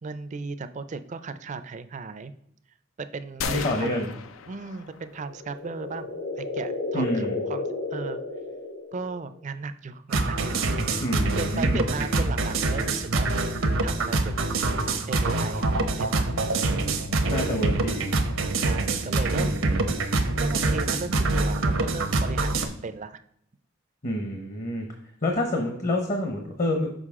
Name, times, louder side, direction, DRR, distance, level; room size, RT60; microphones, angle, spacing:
voice 1, 0.0-2.3 3.0-4.0 4.5-8.2 8.9-10.8 11.3-13.4 13.8-14.5 15.1-16.6 18.6-19.6 20.4-23.2, right 4 dB, 40° right, 12 dB, 0.4 m, -36 dB
sound 1, 3.4-5.3, left 6 dB, 90° left, 0.5 m, -35 dB
voice 2, 3.5-4.1 6.9-7.4 11.0-11.8 17.3-18.1 19.3-20.1 24.0-24.9 25.2-26.9, left 1 dB, 40° left, 3 dB, 0.8 m, -28 dB
sound 2, 5.1-9.4, left 3 dB, 70° left, 1.4 m, -33 dB
sound 3, 10.1-22.7, right 2 dB, 80° right, 0.9 m, -25 dB
6.5 x 5.1 x 3.6 m, 0.70 s
head